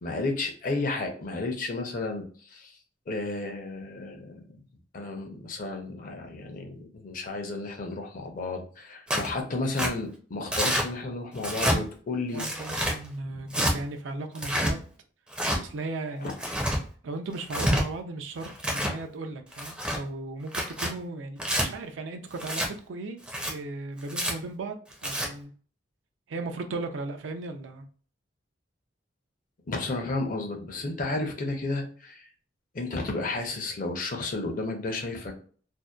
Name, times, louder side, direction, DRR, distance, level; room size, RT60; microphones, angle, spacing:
voice 1, 0.0-2.8 3.1-4.6 4.9-12.6 13.3-13.8 16.0-16.1 29.7-32.3 32.7-35.4, left 2 dB, 45° left, 3 dB, 0.5 m, -33 dB
Tearing, 9.1-9.3 9.8-9.9 10.5-10.9 11.4-11.8 12.4-13.0 13.5-13.7 14.3-14.7 15.3-15.6 16.3-16.8 17.4-17.8 18.4-19.0 19.5-20.0 20.5-20.9 21.4-21.7 22.4-22.7 23.2-23.5 24.1-24.3 24.9-25.3, equal, 5° right, 0.4 m, -27 dB
voice 2, 12.3-14.8 15.6-16.3 17.0-23.2 23.5-25.5 26.3-27.9, right 3 dB, 80° right, 6 dB, 0.4 m, -36 dB
2.6 x 2.1 x 2.2 m, 0.43 s
head